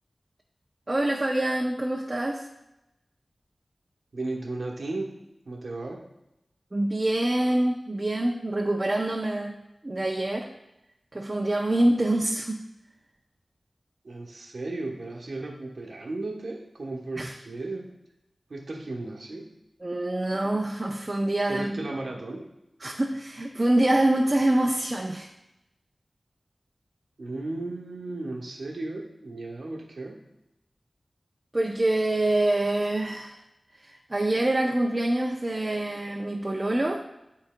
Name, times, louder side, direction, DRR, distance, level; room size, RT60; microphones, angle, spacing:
voice 1, 0.9-2.5 6.7-9.6 9.8-10.5 11.1-12.6 17.2-17.3 19.8-21.8 22.8-25.3 31.5-33.4 33.8-37.0, right 1 dB, 40° right, 1 dB, 0.5 m, -25 dB
voice 2, 4.1-5.2 5.4-6.1 14.0-17.9 18.5-19.5 21.5-22.5 27.2-30.2, right 2 dB, 90° right, 0 dB, 1.0 m, -35 dB
11.0 x 4.0 x 2.2 m, 0.91 s
wide cardioid pair, 55°, 0 cm